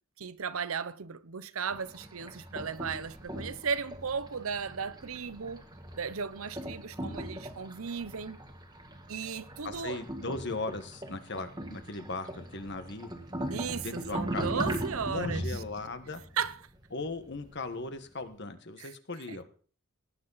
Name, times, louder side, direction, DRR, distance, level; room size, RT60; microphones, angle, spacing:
voice 1, 0.2-5.6 6.0-8.4 9.1-10.0 13.5-15.4 16.4-16.6 18.8-18.9 19.3-19.4, right 6 dB, 90° right, 0.8 m, -35 dB
sound 1, 1.7-17.8, right 1 dB, 20° right, 1.6 m, -40 dB
voice 2, 9.6-13.1 13.8-14.8 15.1-16.2 16.9-19.4, left 3 dB, 55° left, 1.4 m, -38 dB
18.0 x 10.0 x 4.1 m
head